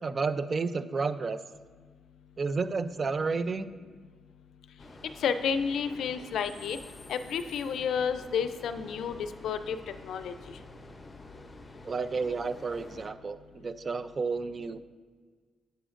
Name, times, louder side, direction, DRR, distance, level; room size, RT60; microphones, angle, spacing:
voice 1, 0.0-1.4 2.4-3.7 11.8-14.8, right 4 dB, 40° right, 13 dB, 0.4 m, -31 dB
sound 1, 4.8-13.1, left 2 dB, 25° left, 0.7 m, -49 dB
voice 2, 5.2-6.8 7.1-9.2 9.4-9.8 10.0-10.3, left 7 dB, 75° left, 11 dB, 0.4 m, -30 dB
10.0 x 7.7 x 2.5 m, 1.5 s
cardioid pair, 105°, 0 cm